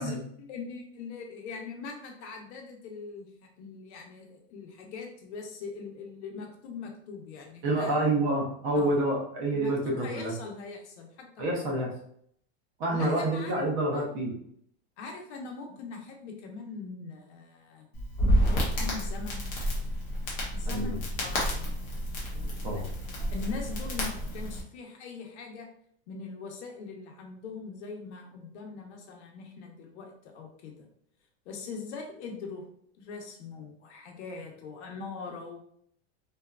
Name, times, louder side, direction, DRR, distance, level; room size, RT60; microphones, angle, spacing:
voice 1, 0.0-3.3 3.6-8.1 8.7-9.0 9.5-11.7 12.9-13.7 13.9-14.1 15.0-17.9 18.4-19.4 20.5-20.9 21.2-21.8 22.3-22.8 23.3-25.7 26.1-30.9 31.5-32.7 33.0-35.6, left 4 dB, 85° left, 2 dB, 0.8 m, -41 dB
voice 2, 7.6-10.3 11.4-11.9 12.8-14.3 20.6-21.0 22.6-22.9, right 1 dB, 45° right, -1 dB, 0.8 m, -28 dB
Crackle, 17.9-24.6, equal, 25° left, 0.5 m, -30 dB
2.7 x 2.3 x 2.3 m, 0.67 s
supercardioid pair, 175°, 33 cm